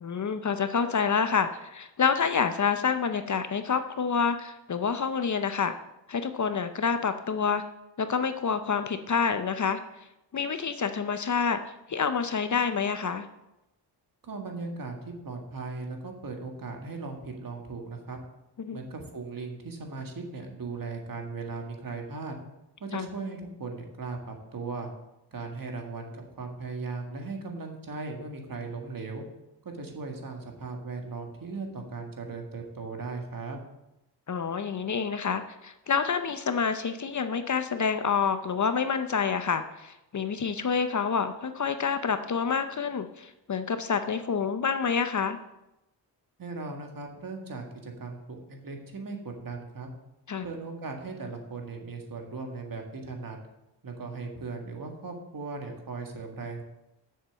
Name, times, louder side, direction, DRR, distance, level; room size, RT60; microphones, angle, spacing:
voice 1, 0.0-5.7 6.1-7.6 8.0-9.8 10.3-11.6 11.9-13.3 18.6-18.8 22.9-23.1 34.3-45.4 50.3-50.5, left 6 dB, 45° left, 9 dB, 0.6 m, -28 dB
voice 2, 14.2-18.2 18.7-22.4 22.8-24.9 25.3-29.2 29.6-33.6 46.4-49.9 50.4-53.4 53.8-56.6, right 3 dB, 50° right, 3 dB, 1.8 m, -38 dB
7.3 x 7.0 x 7.0 m, 0.92 s
wide cardioid pair, 110°, 43 cm